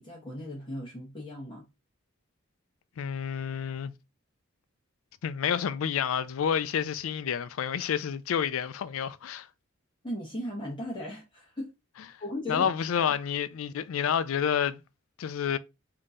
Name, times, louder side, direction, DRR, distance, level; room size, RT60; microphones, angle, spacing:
voice 1, 0.0-1.6 10.0-11.7 12.2-12.7, left 1 dB, 25° left, 1.1 m, -37 dB
voice 2, 3.0-3.9 5.2-9.5 12.5-14.8 15.2-15.6, left 8 dB, 90° left, 0.4 m, -29 dB
3.6 x 2.8 x 3.6 m
head